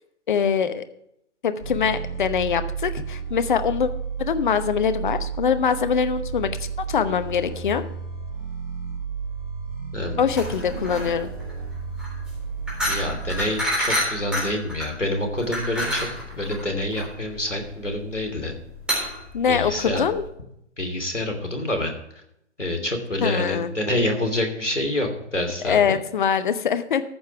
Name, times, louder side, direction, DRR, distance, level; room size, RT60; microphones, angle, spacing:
voice 1, 0.3-0.8 1.4-3.9 4.2-6.5 6.9-7.8 10.2-11.3 19.3-20.2 23.2-23.7 25.6-27.0, left 7 dB, 45° left, 11 dB, 0.9 m, -23 dB
sound 1, 1.6-13.5, right 6 dB, 40° right, 2.3 m, -32 dB
voice 2, 9.9-10.2 12.8-18.5 19.5-20.0 20.8-21.9 22.6-26.0, left 1 dB, 85° left, 4 dB, 2.9 m, -27 dB
sound 2, 10.3-20.3, equal, 5° right, 3.8 m, -29 dB
14.0 x 5.5 x 7.0 m, 0.77 s
figure-of-eight pair, 130°, 35 cm